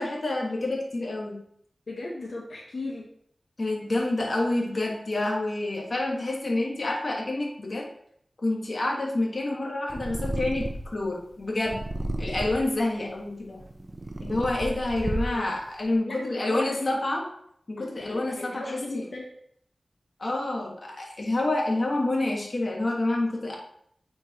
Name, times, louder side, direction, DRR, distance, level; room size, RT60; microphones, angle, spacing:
voice 1, 0.0-1.4 3.6-7.9 8.4-11.8 12.2-13.6 14.2-17.3 17.7-18.8 20.2-23.6, left 2 dB, 55° left, -1 dB, 1.4 m, -28 dB
voice 2, 1.9-3.1 15.0-15.6 16.0-16.9 17.8-19.2, left 2 dB, 80° left, -2 dB, 1.1 m, -37 dB
Purr, 9.9-11.0 11.7-12.7 13.5-15.6, right 1 dB, 40° right, 0.6 m, -32 dB
8.8 x 4.5 x 2.9 m, 0.68 s
wide cardioid pair, 85°, 0 cm